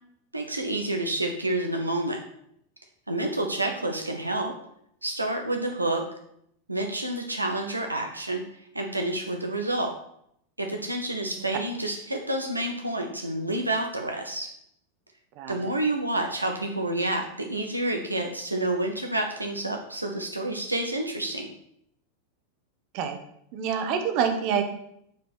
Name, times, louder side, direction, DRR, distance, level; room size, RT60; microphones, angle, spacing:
voice 1, 0.3-2.2 3.1-4.5 5.0-6.1 6.7-8.4 8.7-9.9 10.6-14.5 15.5-21.5, right 1 dB, 85° right, 3 dB, 1.0 m, -29 dB
voice 2, 15.4-15.7 22.9-23.2 23.5-24.6, right 7 dB, 45° right, 5 dB, 1.3 m, -27 dB
8.4 x 4.9 x 6.3 m, 0.72 s
figure-of-eight pair, 90°, 0 cm